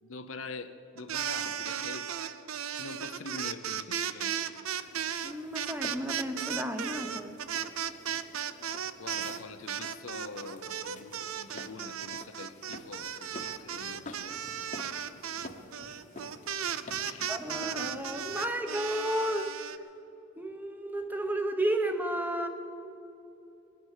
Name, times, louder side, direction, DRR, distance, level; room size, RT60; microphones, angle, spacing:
voice 1, 0.0-2.1 2.8-4.5 9.0-14.4 17.0-17.3, left 3 dB, 70° left, 9 dB, 0.8 m, -44 dB
sound 1, 1.0-9.4 9.7-19.8, right 9 dB, 90° right, 0.6 m, -35 dB
sound 2, 4.8-18.4, left 2 dB, 40° left, 1.2 m, -49 dB
voice 2, 5.2-7.4 17.3-19.6 20.4-22.5, right 1 dB, 10° right, 6 dB, 1.0 m, -32 dB
20.0 x 9.4 x 7.4 m, 3.0 s
head